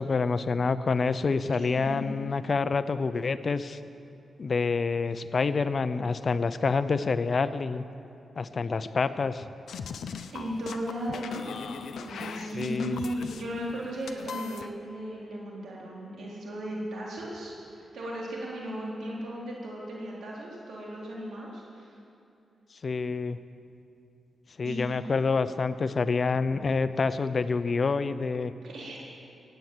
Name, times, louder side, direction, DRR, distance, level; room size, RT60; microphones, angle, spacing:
voice 1, 0.0-3.8 4.4-7.8 8.4-9.5 12.5-13.0 22.8-23.4 24.6-28.5, left 4 dB, 50° left, 13 dB, 0.6 m, -27 dB
sound 1, 9.7-14.7, left 6 dB, 85° left, 0.7 m, -39 dB
voice 2, 10.3-11.5 12.0-21.9 24.6-24.8 28.6-29.0, equal, 85° right, -4 dB, 3.9 m, -36 dB
16.0 x 9.2 x 8.0 m, 2.6 s
cardioid pair, 80°, 0 cm